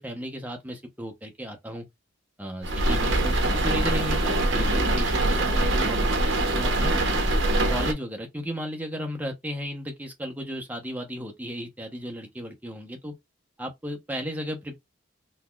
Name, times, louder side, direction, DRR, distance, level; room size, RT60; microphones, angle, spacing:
voice 1, 0.0-1.9 2.4-6.9 7.7-13.1 13.6-14.8, equal, 10° right, 0.7 m, -35 dB
sound 1, 2.6-7.9, right 1 dB, 65° right, 0.8 m, -23 dB
4.0 x 2.8 x 2.3 m
head